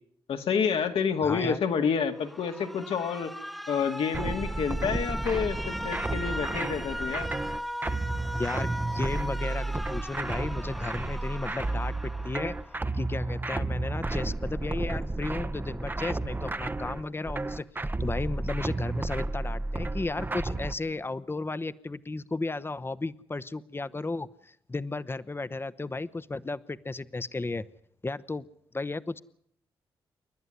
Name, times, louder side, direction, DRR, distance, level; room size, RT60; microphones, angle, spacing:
voice 1, 0.3-3.3 3.7-7.3, left 6 dB, 80° left, 5 dB, 2.1 m, -28 dB
voice 2, 1.2-1.6 8.3-12.5 12.9-27.6 28.0-28.5 28.7-29.2, left 3 dB, 25° left, 13 dB, 0.9 m, -34 dB
Alarm, 2.1-13.1, equal, ahead, 1.1 m, -39 dB
sound 1, 4.1-20.7, right 2 dB, 20° right, 0.9 m, -32 dB
29.0 x 11.0 x 9.8 m, 0.72 s
supercardioid pair, 55°, 10 cm